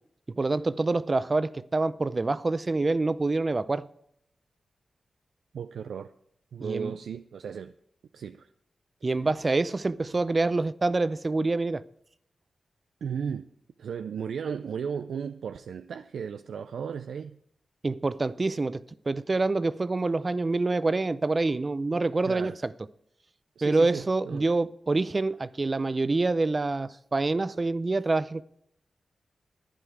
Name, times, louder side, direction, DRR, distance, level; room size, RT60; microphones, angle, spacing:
voice 1, 0.3-3.9 6.6-6.9 9.0-11.8 17.8-22.7 23.6-28.4, right 3 dB, 40° right, 0.6 m, -26 dB
voice 2, 5.5-6.1 6.5-7.7 8.1-8.5 13.0-13.5 13.8-17.4 22.2-22.6 23.6-24.5, right 7 dB, 85° right, 0.4 m, -35 dB
11.5 x 10.5 x 4.6 m
cardioid pair, 45°, 0 cm